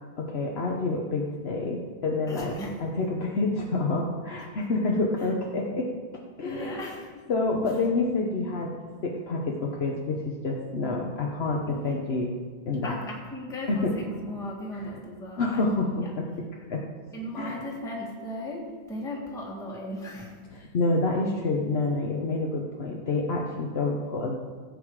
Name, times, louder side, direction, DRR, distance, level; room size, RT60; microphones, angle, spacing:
voice 1, 0.2-5.9 6.4-6.9 7.3-12.3 12.7-13.0 13.7-14.4 14.8-15.0 15.4-16.8 17.4-17.6 20.5-24.3, left 3 dB, 45° left, -1 dB, 0.9 m, -28 dB
voice 2, 2.3-2.9 4.6-4.7 6.4-7.2 11.7-12.3 12.8-15.7 16.0-16.1 17.1-20.4, left 1 dB, ahead, -3 dB, 1.7 m, -37 dB
16.0 x 8.1 x 4.8 m, 1.5 s
omnidirectional pair, 2.2 m